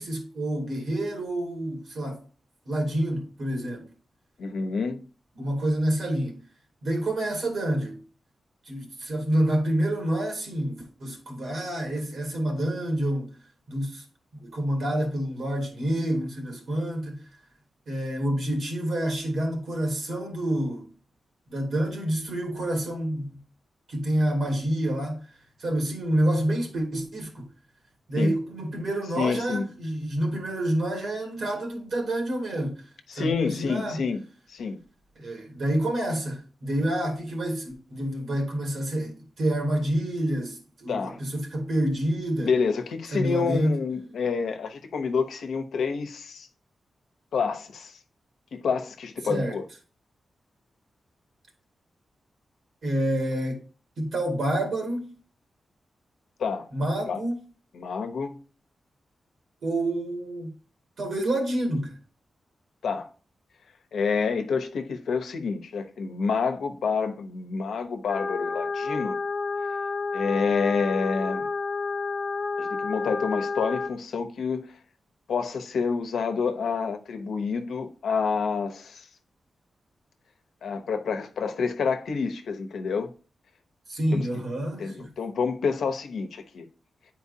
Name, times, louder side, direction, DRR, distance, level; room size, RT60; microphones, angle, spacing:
voice 1, 0.0-2.2 2.7-3.8 5.4-6.4 6.8-8.0 8.7-13.3 13.7-14.0 14.3-17.2 17.9-20.9 21.5-23.4 23.9-25.2 25.6-27.5 28.1-32.9 33.1-34.0 35.2-42.5 43.1-43.8 49.2-49.6 52.8-53.6 54.0-55.1 56.7-57.4 59.6-60.5 61.0-62.0 83.9-85.1, right 1 dB, 70° right, 2.4 m, -28 dB
voice 2, 4.4-5.0 28.2-28.3 29.1-29.7 33.1-34.2 34.5-34.8 40.9-41.2 42.4-46.5 47.3-48.0 48.5-49.6 56.4-56.7 57.1-57.2 57.7-58.4 62.8-63.1 63.9-69.2 70.1-71.5 72.6-74.8 75.3-79.1 80.6-83.1 84.1-84.3 84.8-86.6, left 5 dB, 85° left, 0.9 m, -28 dB
sound 1, 68.1-73.9, left 4 dB, 50° left, 0.5 m, -30 dB
9.6 x 4.4 x 2.7 m
wide cardioid pair, 120°, 0 cm